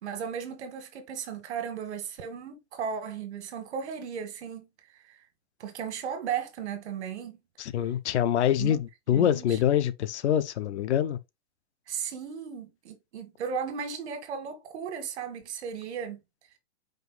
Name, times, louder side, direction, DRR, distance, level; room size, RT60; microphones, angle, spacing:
voice 1, 0.0-4.7 5.1-5.2 5.6-7.4 8.6-8.8 9.1-9.6 11.9-16.2, right 7 dB, 85° right, 1.5 m, -35 dB
voice 2, 7.6-11.2, left 10 dB, 90° left, 0.7 m, -25 dB
5.2 x 2.5 x 3.9 m
supercardioid pair, 155°, 33 cm